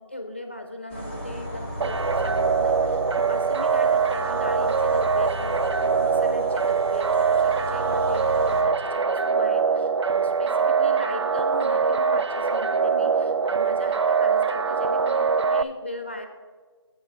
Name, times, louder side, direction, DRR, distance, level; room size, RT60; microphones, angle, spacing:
voice 1, 0.0-16.3, left 1 dB, 25° left, 5 dB, 0.4 m, -38 dB
sound 1, 0.9-8.6, equal, 10° right, 0.7 m, -35 dB
sound 2, 1.8-15.6, right 5 dB, 70° right, 0.4 m, -23 dB
7.3 x 5.9 x 7.0 m, 1.5 s
figure-of-eight pair, 170°, 15 cm